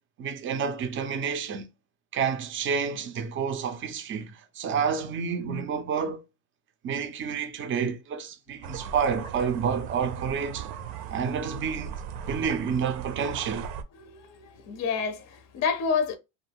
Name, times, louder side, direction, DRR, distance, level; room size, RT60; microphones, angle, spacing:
voice 1, 0.2-1.7 2.1-6.2 6.8-10.7 11.1-12.0 12.3-13.7, right 6 dB, 25° right, 0.5 m, -29 dB
sound 1, 8.6-13.8, right 7 dB, 65° right, 0.6 m, -38 dB
voice 2, 14.0-16.2, left 6 dB, 35° left, 0.5 m, -29 dB
2.3 x 2.3 x 3.3 m
supercardioid pair, 115°, 48 cm